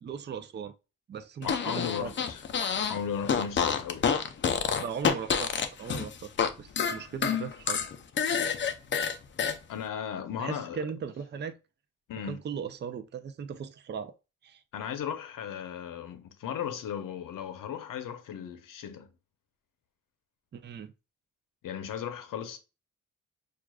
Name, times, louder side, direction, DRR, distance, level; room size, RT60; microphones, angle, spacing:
voice 1, 0.0-0.7 1.1-2.1 4.8-5.5 5.8-6.3 6.6-7.8 10.4-11.6 12.3-14.1 14.4-14.6 20.5-20.9, right 7 dB, 35° right, 0.4 m, -38 dB
voice 2, 1.4-2.4 2.9-4.1 9.7-10.9 12.1-12.4 14.7-19.1 21.6-22.6, left 8 dB, 80° left, 0.7 m, -36 dB
Fart, 1.4-3.0 3.2-6.5 6.8-9.6, left 7 dB, 35° left, 0.4 m, -28 dB
6.0 x 2.4 x 2.2 m
cardioid pair, 115°, 32 cm